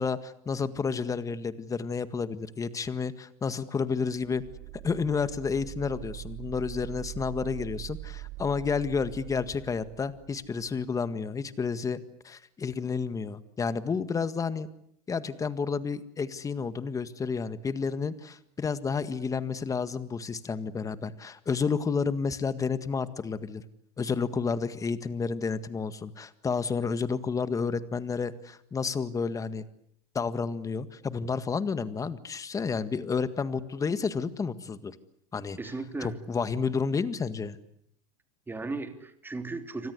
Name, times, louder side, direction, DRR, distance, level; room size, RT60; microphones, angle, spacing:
voice 1, 0.0-4.4 4.8-14.7 15.1-23.6 24.0-29.7 30.1-35.0 35.3-35.6 36.0-37.6, left 5 dB, 15° left, 12 dB, 1.8 m, -31 dB
sound 1, 4.2-10.8, right 18 dB, 65° right, 3.7 m, -43 dB
voice 2, 35.6-36.2 38.5-39.9, right 3 dB, 10° right, 7 dB, 3.3 m, -36 dB
27.5 x 24.5 x 8.2 m, 0.72 s
supercardioid pair, 135°, 19 cm